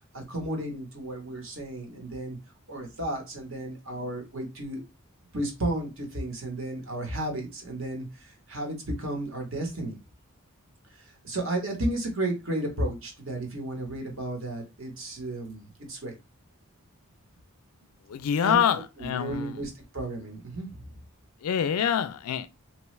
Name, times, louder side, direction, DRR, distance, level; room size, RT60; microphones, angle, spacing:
voice 1, 0.1-2.4 2.7-4.8 5.3-10.0 11.0-16.2 18.4-20.8, right 1 dB, 60° right, 1.1 m, -33 dB
voice 2, 18.1-19.6 21.4-22.5, left 8 dB, 80° left, 0.4 m, -26 dB
3.0 x 2.2 x 3.1 m
head